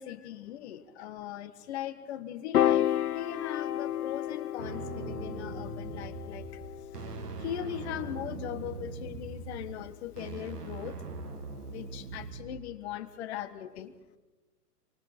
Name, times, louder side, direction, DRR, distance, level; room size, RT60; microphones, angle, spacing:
voice 1, 0.0-6.6 7.4-11.0 11.6-13.9, left 11 dB, 45° left, 10 dB, 1.4 m, -39 dB
Piano, 2.5-8.9, left 11 dB, 75° left, 0.6 m, -32 dB
sound 1, 4.6-12.6, right 4 dB, 80° right, 2.2 m, -41 dB
28.0 x 24.5 x 4.4 m, 1.2 s
figure-of-eight pair, 115°, 47 cm